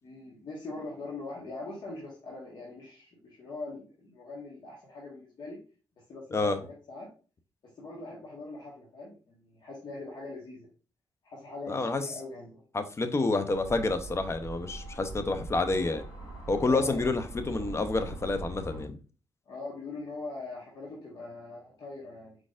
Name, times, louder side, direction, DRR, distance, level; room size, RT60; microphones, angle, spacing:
voice 1, 0.0-5.6 6.1-7.1 7.8-10.7 11.2-12.6 16.6-17.1 19.5-22.4, left 3 dB, 65° left, -4 dB, 1.5 m, -42 dB
voice 2, 11.7-12.0 12.7-16.0 16.5-19.0, left 3 dB, 30° left, 9 dB, 0.7 m, -28 dB
sound 1, 13.5-18.8, right 2 dB, 80° left, 2.3 m, -42 dB
4.7 x 4.1 x 2.5 m, 0.36 s
cardioid pair, 65°, 9 cm